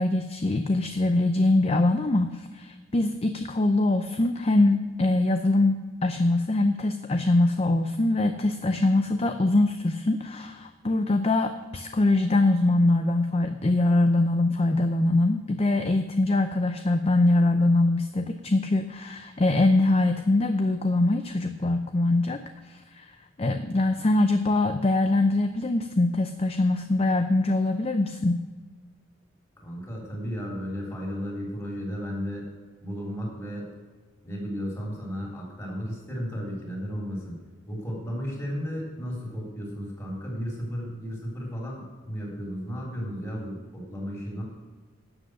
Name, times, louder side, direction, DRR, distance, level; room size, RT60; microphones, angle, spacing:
voice 1, 0.0-23.1 23.4-28.4, left 2 dB, 30° left, 7 dB, 0.5 m, -23 dB
voice 2, 29.6-32.5 32.8-33.7 34.2-37.4 37.7-44.4, equal, 15° left, -3 dB, 3.6 m, -34 dB
11.5 x 7.8 x 6.4 m, 1.4 s
head